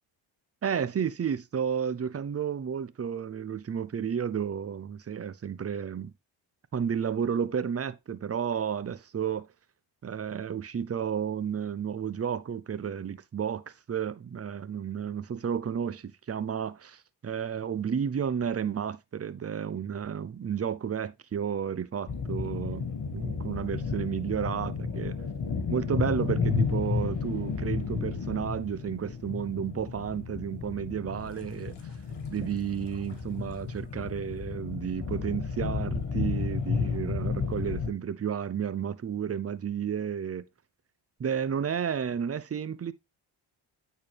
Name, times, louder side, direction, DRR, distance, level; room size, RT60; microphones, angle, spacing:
voice 1, 0.6-6.1 6.7-9.5 10.0-22.9 23.1-25.2 25.7-31.9 32.3-40.5 41.2-42.9, right 8 dB, 30° right, 0.7 m, -32 dB
sound 1, 22.1-37.9, left 5 dB, 55° left, 2.3 m, -32 dB
8.8 x 4.4 x 3.4 m
supercardioid pair, 65°, 49 cm